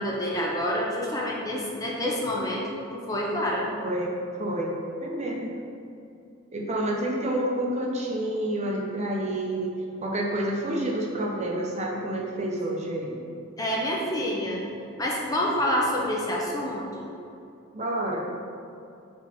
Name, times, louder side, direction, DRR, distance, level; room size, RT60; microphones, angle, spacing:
voice 1, 0.0-3.7 13.6-14.6 15.0-17.1, equal, 15° left, -3 dB, 0.7 m, -28 dB
voice 2, 3.7-5.6 6.5-9.7 10.0-13.2 17.7-18.4, right 1 dB, 30° right, -2 dB, 0.8 m, -29 dB
5.0 x 4.7 x 5.6 m, 2.6 s
head